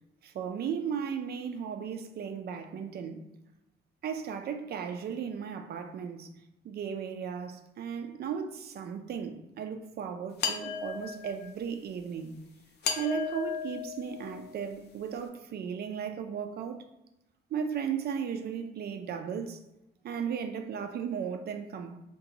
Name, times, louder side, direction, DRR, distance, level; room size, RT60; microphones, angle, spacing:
voice 1, 0.2-3.2 4.0-6.3 6.6-12.3 13.0-16.8 17.5-19.6 20.0-22.0, right 7 dB, 55° right, 0.4 m, -36 dB
sound 1, 10.4-11.5 12.8-14.7, left 7 dB, 55° left, 0.4 m, -35 dB
2.9 x 2.2 x 2.6 m
cardioid pair, 90°, 20 cm